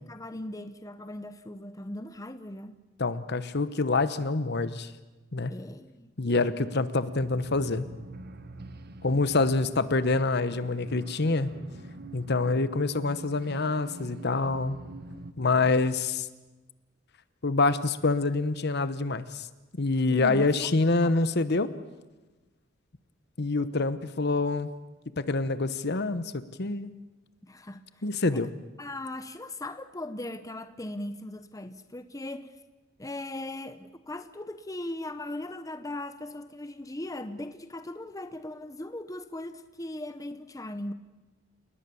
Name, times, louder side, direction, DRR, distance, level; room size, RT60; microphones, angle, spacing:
voice 1, 0.0-2.7 5.5-6.1 20.1-20.7 21.0-21.1 27.4-28.0 28.3-28.5 28.8-32.5 33.0-40.9, left 1 dB, 15° left, 0.9 m, -39 dB
voice 2, 3.0-4.9 5.3-5.5 6.2-7.9 9.0-11.5 12.1-14.8 15.4-16.3 17.4-19.5 19.7-21.7 23.4-24.7 25.2-26.3 26.6-26.9 28.0-28.5, left 3 dB, 55° left, 1.1 m, -26 dB
sound 1, 6.6-15.3, right 2 dB, 50° right, 1.4 m, -45 dB
30.0 x 19.0 x 7.1 m
head